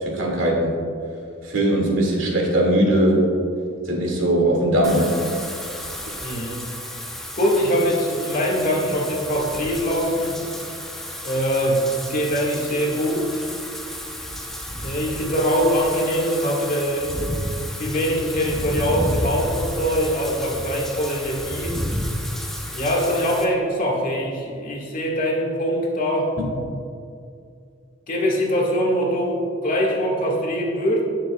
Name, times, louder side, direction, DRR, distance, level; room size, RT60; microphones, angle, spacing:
voice 1, 0.0-0.7 1.5-3.2 3.9-5.1, right 1 dB, 70° right, -2 dB, 2.3 m, -19 dB
Wind / Rain, 4.8-23.4, equal, ahead, 0.9 m, -32 dB
voice 2, 6.2-6.6 7.4-10.4 11.2-13.4 14.8-17.2 17.8-21.8 22.7-26.3 28.1-31.0, equal, 45° left, -3 dB, 1.9 m, -23 dB
18.0 x 6.7 x 2.4 m, 2.5 s
head